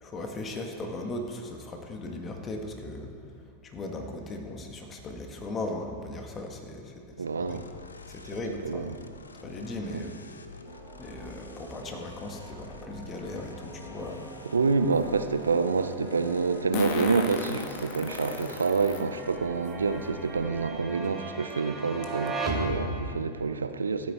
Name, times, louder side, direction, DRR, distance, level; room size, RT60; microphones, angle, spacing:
voice 1, 0.0-3.1 3.6-7.6 8.1-9.0 9.4-10.2 11.0-14.3, left 2 dB, 30° left, 1.7 m, -38 dB
voice 2, 7.2-7.6 8.6-9.0 9.9-10.1 14.5-24.1, right 4 dB, 90° right, 0.6 m, -27 dB
sound 1, 7.5-20.7, left 4 dB, 90° left, 0.6 m, -48 dB
sound 2, 10.7-23.3, right 2 dB, 15° right, 2.0 m, -40 dB
Fart, 14.0-14.1 16.7-19.0 19.7-19.8 21.0-21.1 21.5-21.6 22.0-22.3, left 5 dB, 55° left, 1.3 m, -34 dB
14.5 x 8.9 x 4.3 m
hypercardioid pair, 95°, 0 cm